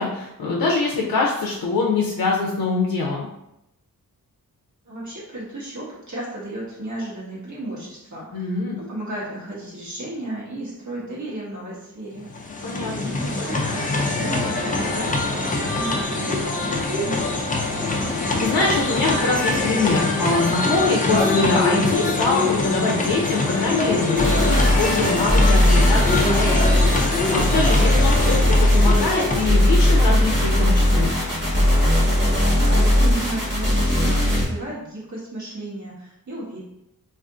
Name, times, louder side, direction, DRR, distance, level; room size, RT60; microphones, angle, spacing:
voice 1, 0.0-3.3 8.3-8.8 12.6-13.1 18.4-26.6 26.9-31.1, left 3 dB, 75° left, -2 dB, 0.5 m, -24 dB
voice 2, 4.8-16.4 16.8-17.4 32.5-36.6, right 1 dB, 50° right, -6 dB, 1.0 m, -34 dB
sound 1, 12.2-30.3, left 2 dB, 25° left, 0.4 m, -24 dB
sound 2, 24.2-34.4, left 1 dB, 30° right, 1.1 m, -18 dB
2.5 x 2.5 x 3.5 m, 0.84 s
wide cardioid pair, 145°, 36 cm